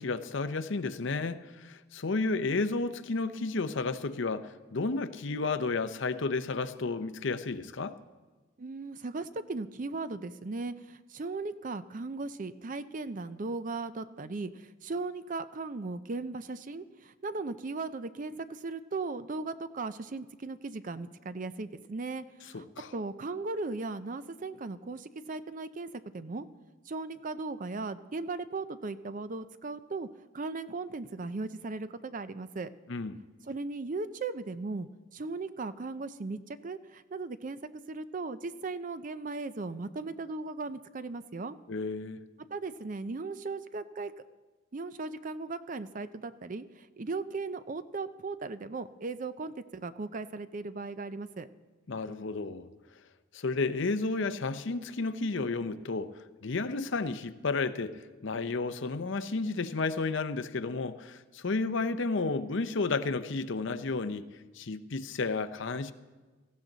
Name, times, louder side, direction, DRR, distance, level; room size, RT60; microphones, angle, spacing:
voice 1, 0.0-8.0 22.5-22.9 32.9-33.2 41.7-42.2 51.9-52.7 53.3-56.1 56.4-64.3 64.5-65.9, left 3 dB, 60° left, 0.6 m, -32 dB
voice 2, 8.6-22.7 22.9-26.5 26.9-30.1 30.3-32.7 33.5-37.6 37.9-41.6 42.5-44.1 44.7-51.5, right 3 dB, 40° right, 0.5 m, -37 dB
18.0 x 14.5 x 3.9 m
head